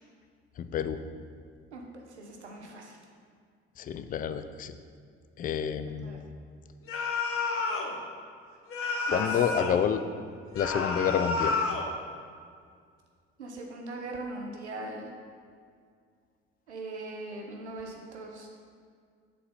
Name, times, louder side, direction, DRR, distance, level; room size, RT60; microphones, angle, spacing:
voice 1, 0.6-1.0 3.8-4.7 5.4-6.2 9.1-10.0 10.6-11.6, left 8 dB, 25° left, 10 dB, 0.4 m, -29 dB
voice 2, 1.7-3.0 6.0-6.3 9.1-9.3 13.4-15.1 16.7-18.5, right 2 dB, 90° right, 0 dB, 0.6 m, -40 dB
sound 1, 6.9-7.9 8.7-9.8 10.5-11.9, left 4 dB, 40° left, 0.9 m, -30 dB
8.4 x 4.0 x 4.1 m, 2.1 s
figure-of-eight pair, 50°, 33 cm